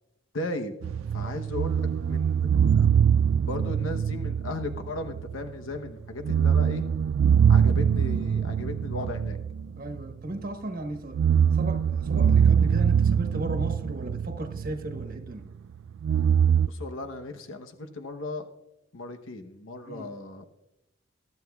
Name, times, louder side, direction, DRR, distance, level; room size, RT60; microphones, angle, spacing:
voice 1, 0.3-0.8 1.1-2.9 3.4-6.8 7.5-9.4 16.7-18.5 18.9-20.5, left 2 dB, 90° left, 5 dB, 0.9 m, -36 dB
sound 1, 0.8-5.5 5.8-5.9 6.2-10.4 11.0-15.3 16.0-16.7, right 7 dB, 85° right, 0.3 m, -23 dB
voice 2, 9.8-11.2 11.5-15.5 19.8-20.1, right 1 dB, 45° right, 4 dB, 1.3 m, -36 dB
22.5 x 12.0 x 2.3 m, 0.92 s
head